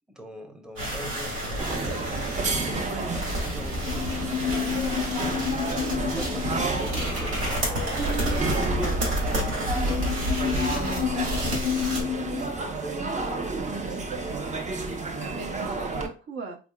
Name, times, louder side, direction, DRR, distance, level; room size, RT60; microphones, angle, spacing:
voice 1, 0.1-2.3 2.9-4.1 6.1-8.6 9.4-10.3 11.7-14.2, equal, 5° right, 4 dB, 0.7 m, -42 dB
sound 1, 0.8-12.0, equal, 90° right, 2.0 m, -30 dB
sound 2, 1.3-2.5 2.8-12.5, left 9 dB, 80° left, 0.5 m, -31 dB
sound 3, 1.6-16.1, right 3 dB, 35° right, 0.7 m, -31 dB
voice 2, 2.7-3.3 4.6-5.0 15.1-16.6, right 3 dB, 70° right, 3 dB, 0.9 m, -40 dB
3.9 x 3.4 x 2.2 m, 0.33 s
cardioid pair, 90°, 20 cm